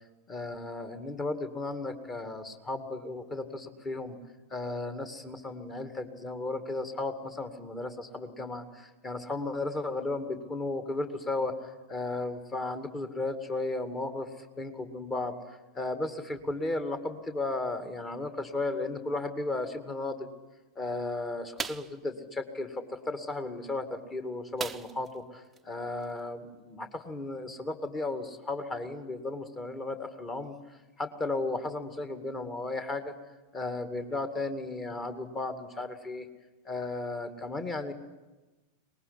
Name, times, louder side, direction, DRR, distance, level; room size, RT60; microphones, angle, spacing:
voice 1, 0.3-4.2 4.5-20.3 20.8-33.1 33.5-36.3 36.6-37.9, left 2 dB, 20° left, 8 dB, 2.2 m, -35 dB
sound 1, 21.6-22.0 24.6-25.2 25.5-25.6 26.0-26.2, right 6 dB, 15° right, 0.7 m, -37 dB
24.0 x 20.0 x 10.0 m, 1.2 s
figure-of-eight pair, 90°, 0 cm